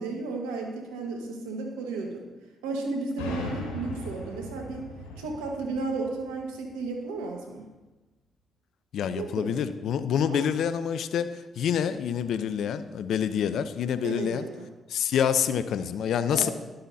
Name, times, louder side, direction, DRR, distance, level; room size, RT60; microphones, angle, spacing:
voice 1, 0.0-2.3 2.6-4.9 5.2-7.7 9.1-9.6 10.3-10.5 14.0-14.6 16.3-16.5, right 3 dB, 90° right, 2 dB, 1.5 m, -33 dB
sound 1, 3.2-6.8, left 1 dB, 90° left, 1.9 m, -38 dB
voice 2, 8.9-14.5 14.9-16.5, left 8 dB, 70° left, 12 dB, 0.6 m, -27 dB
12.0 x 11.5 x 2.8 m, 1.1 s
hypercardioid pair, 50°, 0 cm